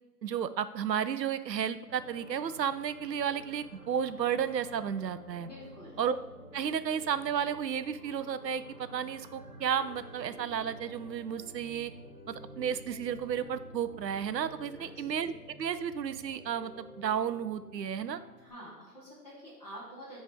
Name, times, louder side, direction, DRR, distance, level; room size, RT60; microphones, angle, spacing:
voice 1, 0.2-5.5 6.0-6.2 6.5-11.9 12.3-15.3 15.6-18.2, right 8 dB, 85° right, 13 dB, 0.5 m, -33 dB
sound 1, 1.9-18.3, right 1 dB, 55° right, 1.3 m, -52 dB
voice 2, 5.4-6.0 14.7-15.2 18.4-20.2, equal, 25° left, -9 dB, 1.8 m, -48 dB
Piano, 9.8-18.5, left 2 dB, 60° left, 1.6 m, -54 dB
8.1 x 3.3 x 3.5 m, 1.0 s
figure-of-eight pair, 175°, 49 cm